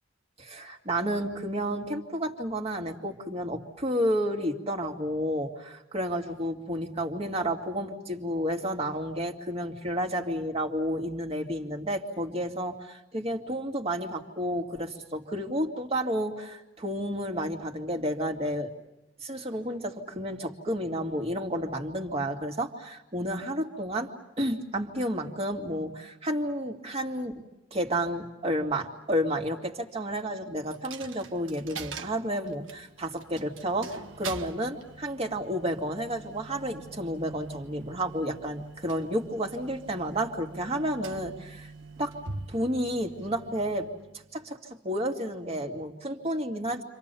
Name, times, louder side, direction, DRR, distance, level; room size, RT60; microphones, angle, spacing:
voice 1, 0.4-18.7 19.2-24.1 24.4-27.3 27.7-41.7 42.0-42.2 42.5-43.9 44.3-44.6 44.8-46.8, equal, 35° right, 3 dB, 2.5 m, -31 dB
Coin (dropping), 30.7-44.4, right 4 dB, 85° right, 1.5 m, -44 dB
29.5 x 26.0 x 7.0 m, 0.91 s
head